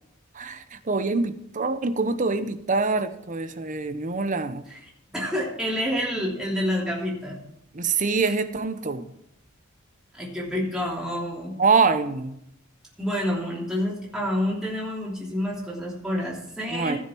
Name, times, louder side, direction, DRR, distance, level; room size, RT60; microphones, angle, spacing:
voice 1, 0.3-4.6 7.7-9.0 11.6-12.3 16.7-17.0, right 4 dB, 40° right, 10 dB, 0.7 m, -25 dB
voice 2, 5.1-7.4 8.2-8.3 10.1-11.5 13.0-17.0, equal, 5° right, -6 dB, 3.0 m, -28 dB
15.5 x 6.6 x 4.5 m, 0.80 s
head